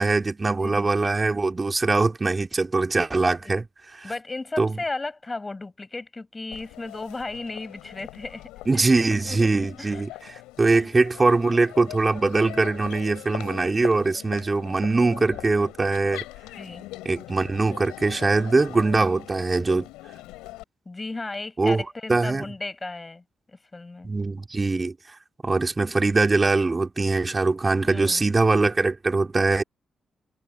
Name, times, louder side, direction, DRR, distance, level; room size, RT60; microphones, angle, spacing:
voice 1, 0.0-3.6 4.0-4.1 4.6-4.8 8.7-16.2 17.0-19.9 21.6-21.8 22.1-22.4 24.0-24.9 25.4-29.6, right 3 dB, 30° right, 2.9 m, -22 dB
voice 2, 4.0-8.9 9.2-9.4 9.8-10.0 10.7-10.8 16.5-16.9 20.9-24.1 27.8-28.2, left 3 dB, 30° left, 6.9 m, -35 dB
Crowd, 6.5-20.6, left 19 dB, 85° left, 5.3 m, -41 dB
hypercardioid pair, 45°, 0 cm